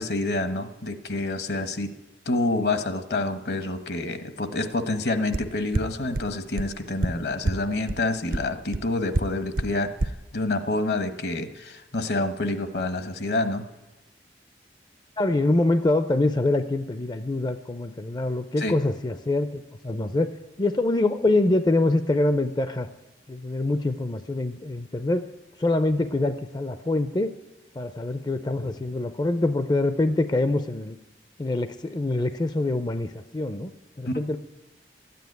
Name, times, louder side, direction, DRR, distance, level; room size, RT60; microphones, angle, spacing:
voice 1, 0.0-1.9 2.3-13.6 18.6-18.7 34.1-34.2, left 2 dB, 65° left, 10 dB, 1.2 m, -28 dB
sound 1, 5.3-5.4 5.7-5.8 6.1-6.2 6.6-6.7 7.0-7.1 7.5-7.6 7.9-8.0 8.3-8.4 8.7-8.8 9.1-9.2 9.6-9.7 10.0-10.1, right 2 dB, 50° right, 0.6 m, -23 dB
voice 2, 15.2-20.3 20.6-22.9 23.3-25.3 25.6-27.3 27.8-31.0 31.4-33.7 34.0-34.4, left 2 dB, 25° left, 11 dB, 0.5 m, -25 dB
13.5 x 9.3 x 9.4 m, 1.1 s
head